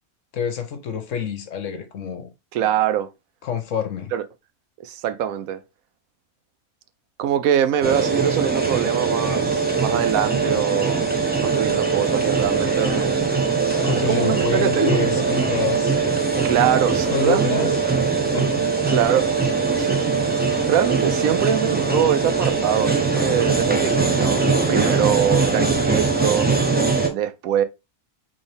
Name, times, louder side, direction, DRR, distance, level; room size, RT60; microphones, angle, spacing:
voice 1, 0.3-2.3 3.4-4.1 13.8-16.2 16.6-16.7 17.1-17.7 18.3-18.6, left 7 dB, 65° left, 1.1 m, -27 dB
voice 2, 2.5-3.1 4.1-4.2 4.8-5.6 7.2-11.1 11.4-13.3 14.1-15.1 16.4-17.7 18.9-19.3 19.7-20.1 20.7-26.5 27.1-27.6, right 10 dB, 85° right, 1.0 m, -23 dB
sound 1, 7.8-27.1, right 4 dB, 10° right, 0.5 m, -21 dB
4.1 x 3.6 x 3.4 m
omnidirectional pair, 1.5 m